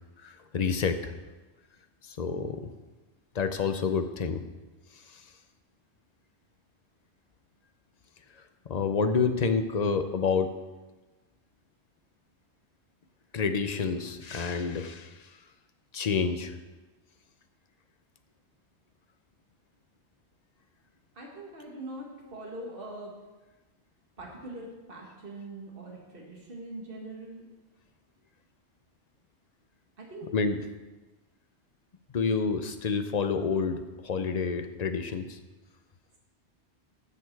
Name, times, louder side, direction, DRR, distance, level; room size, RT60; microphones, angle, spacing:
voice 1, 0.2-1.1 2.0-2.7 3.3-4.4 5.1-5.2 8.7-10.6 13.3-15.1 15.9-16.5 30.3-30.6 32.1-35.4, left 5 dB, 45° left, 8 dB, 0.7 m, -28 dB
voice 2, 21.2-23.1 24.2-27.5 30.0-30.3, right 2 dB, 50° right, -2 dB, 2.0 m, -42 dB
12.5 x 6.7 x 4.6 m, 1.2 s
omnidirectional pair, 1.2 m